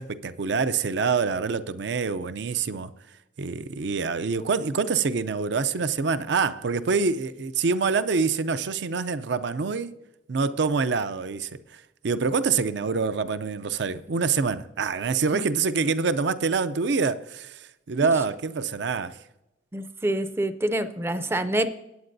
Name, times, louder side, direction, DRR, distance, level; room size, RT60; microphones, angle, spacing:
voice 1, 0.0-2.9 3.4-9.9 10.3-19.2, right 5 dB, 65° right, 0.5 m, -26 dB
voice 2, 19.7-21.7, right 1 dB, 15° right, 0.4 m, -26 dB
17.5 x 8.9 x 2.7 m
head